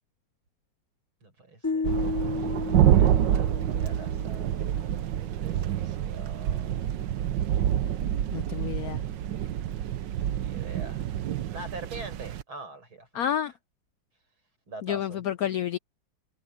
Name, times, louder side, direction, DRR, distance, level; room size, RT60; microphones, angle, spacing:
voice 1, 1.2-1.9 2.4-2.5 2.9-7.1 10.2-11.1 11.5-13.3 14.7-15.2, right 2 dB, 80° right, 8.6 m, -44 dB
sound 1, 1.6-4.8, left 4 dB, 15° left, 0.7 m, -33 dB
sound 2, 1.8-12.4, right 11 dB, 65° right, 1.4 m, -27 dB
voice 2, 8.3-9.0 13.1-13.5 14.8-15.8, left 10 dB, 85° left, 0.8 m, -29 dB
omnidirectional pair, 2.2 m